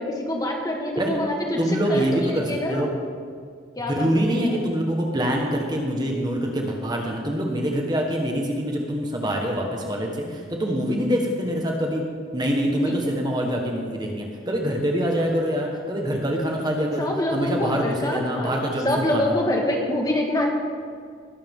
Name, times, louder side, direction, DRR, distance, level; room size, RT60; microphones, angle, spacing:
voice 1, 0.0-2.9 3.7-4.1 4.3-4.6 10.2-10.5 12.8-12.9 17.0-18.6 18.8-20.5, left 1 dB, 20° left, 0 dB, 1.6 m, -26 dB
voice 2, 1.6-2.9 3.9-12.0 12.3-19.4, equal, 20° right, 0 dB, 1.4 m, -25 dB
19.5 x 12.0 x 3.7 m, 2.1 s
head